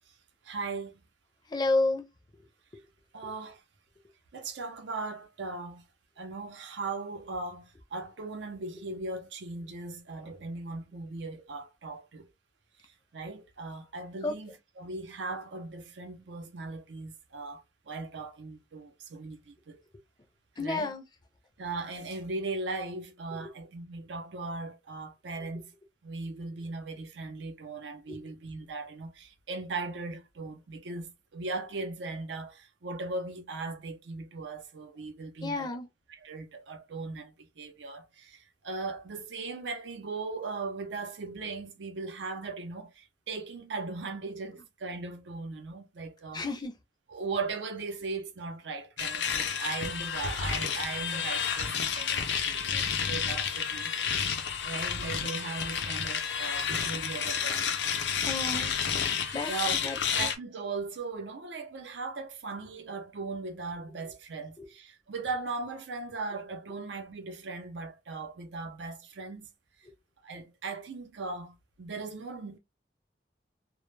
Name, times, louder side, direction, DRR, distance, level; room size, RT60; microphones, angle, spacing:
voice 1, 0.4-1.0 3.1-3.6 4.3-5.8 6.2-12.2 13.1-19.8 20.6-20.9 21.6-25.7 26.0-35.7 36.2-46.4 47.1-53.9 54.6-57.7 59.2-59.8 60.1-69.5 70.2-72.6, right 3 dB, 85° right, 0.5 m, -38 dB
voice 2, 1.5-2.1 14.2-14.3 20.6-21.0 23.4-23.5 28.1-28.2 35.4-35.9 46.3-46.7 58.2-58.7 59.3-59.5 59.8-60.0 64.0-64.1 64.6-64.7, left 2 dB, 25° left, 0.4 m, -30 dB
sound 1, 49.0-60.4, left 7 dB, 80° left, 0.5 m, -31 dB
2.1 x 2.0 x 3.1 m
head